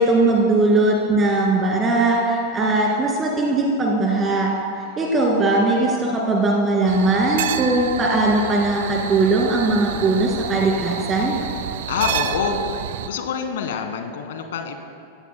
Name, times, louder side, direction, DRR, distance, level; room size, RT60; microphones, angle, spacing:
voice 1, 0.0-4.5 5.0-11.3, right 2 dB, 20° right, -1 dB, 2.3 m, -19 dB
sound 1, 6.9-13.1, right 10 dB, 55° right, 0.6 m, -29 dB
voice 2, 11.9-12.6 13.1-14.8, left 7 dB, 60° left, 6 dB, 1.6 m, -26 dB
24.5 x 15.5 x 2.2 m, 2.4 s
figure-of-eight pair, 90°, 0 cm